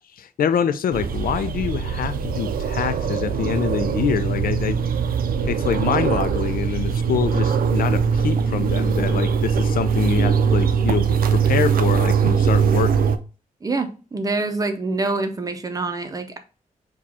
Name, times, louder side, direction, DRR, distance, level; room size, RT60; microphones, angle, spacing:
voice 1, 0.2-4.8 5.4-13.2, left 8 dB, 90° left, 0.4 m, -25 dB
sound 1, 0.9-13.2, right 6 dB, 90° right, 0.5 m, -21 dB
voice 2, 13.6-16.4, right 3 dB, 25° right, 0.6 m, -26 dB
4.8 x 2.3 x 4.1 m
wide cardioid pair, 175°, 15 cm